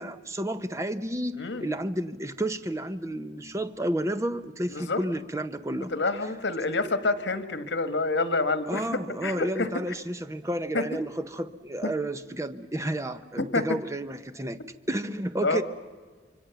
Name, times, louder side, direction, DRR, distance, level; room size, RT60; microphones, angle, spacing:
voice 1, 0.0-5.9 8.7-14.6 14.9-15.6, right 1 dB, 15° right, 11 dB, 0.8 m, -31 dB
voice 2, 5.9-9.7 10.7-10.8 11.8-11.9 13.5-13.6 15.4-15.6, left 3 dB, 85° left, 11 dB, 1.4 m, -27 dB
26.0 x 24.0 x 7.0 m, 1.5 s
head